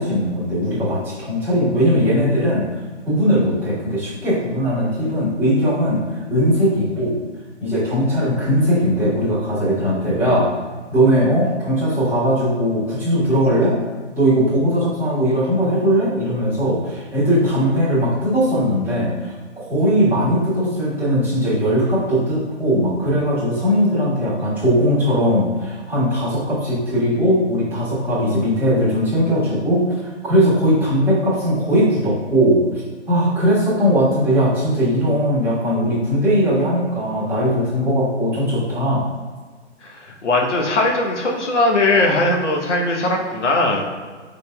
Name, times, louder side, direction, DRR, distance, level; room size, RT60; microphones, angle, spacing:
voice 1, 0.0-2.6 3.1-6.0 6.3-7.2 7.6-10.6 10.9-13.8 14.1-32.6 33.1-39.1, equal, 5° right, -12 dB, 1.3 m, -19 dB
voice 2, 39.8-43.8, left 2 dB, 70° left, 0 dB, 0.9 m, -19 dB
5.1 x 3.9 x 2.2 m, 1.5 s
figure-of-eight pair, 135°, 36 cm